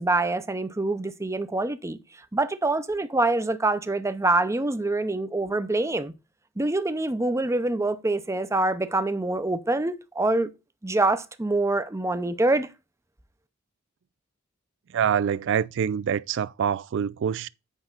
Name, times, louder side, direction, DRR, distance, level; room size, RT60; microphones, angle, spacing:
voice 1, 0.0-2.0 2.3-6.1 6.6-10.5 10.8-12.7, right 2 dB, 15° right, 0.6 m, -25 dB
voice 2, 14.9-17.5, right 8 dB, 60° right, 0.3 m, -25 dB
8.1 x 5.5 x 3.9 m
head